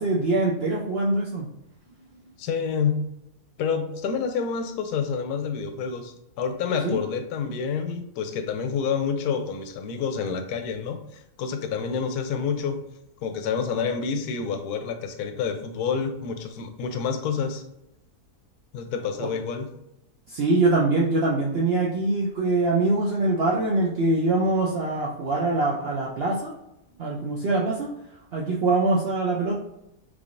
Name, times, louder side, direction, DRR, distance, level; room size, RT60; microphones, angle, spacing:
voice 1, 0.0-1.5 6.8-7.0 19.2-19.3 20.3-26.5 27.0-27.9 28.3-29.5, right 2 dB, 70° right, -3 dB, 0.6 m, -23 dB
voice 2, 2.1-3.0 3.6-12.8 13.2-17.6 18.7-19.7, left 6 dB, 90° left, 7 dB, 1.1 m, -28 dB
3.4 x 3.3 x 2.5 m, 0.85 s
omnidirectional pair, 1.6 m